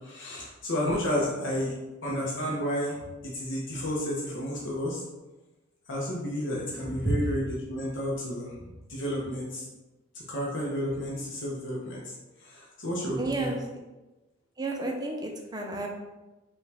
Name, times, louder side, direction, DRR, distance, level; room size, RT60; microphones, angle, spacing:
voice 1, 0.0-1.7 2.0-5.0 5.9-9.7 10.1-13.5, equal, 60° left, -5 dB, 0.9 m, -31 dB
voice 2, 13.2-13.6 14.6-15.9, right 2 dB, 20° right, 1 dB, 0.5 m, -31 dB
5.3 x 2.4 x 3.4 m, 1.1 s
head